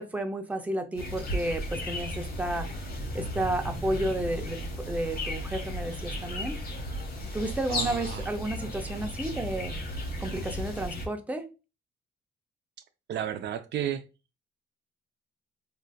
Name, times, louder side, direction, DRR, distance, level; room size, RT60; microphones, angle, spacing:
voice 1, 0.0-2.7 3.1-4.6 4.9-6.6 7.3-9.8 10.2-11.5, right 1 dB, 10° right, 0.5 m, -32 dB
sound 1, 1.0-11.1, left 1 dB, 50° left, 1.1 m, -35 dB
voice 2, 7.7-8.3 13.1-14.0, right 10 dB, 65° right, 0.4 m, -32 dB
3.7 x 2.5 x 2.2 m
cardioid pair, 90°, 20 cm